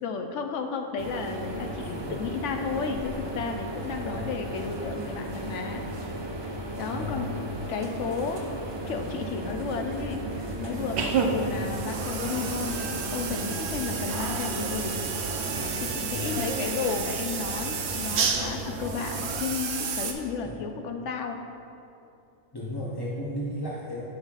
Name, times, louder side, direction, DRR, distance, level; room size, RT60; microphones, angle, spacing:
voice 1, 0.0-5.8 6.8-7.3 7.7-8.5 8.9-10.2 10.6-15.0 15.8-21.4, left 5 dB, 70° left, 5 dB, 0.9 m, -33 dB
sound 1, 1.0-19.4, right 1 dB, 35° right, 0.4 m, -36 dB
voice 2, 1.8-2.1 4.0-4.3 6.9-7.3 11.3-11.7 16.1-16.3 20.4-20.7 22.5-24.0, left 1 dB, 30° left, -6 dB, 0.5 m, -35 dB
sound 2, 10.7-20.1, right 5 dB, 65° right, 0.8 m, -31 dB
11.0 x 5.5 x 2.4 m, 2.6 s
omnidirectional pair, 1.3 m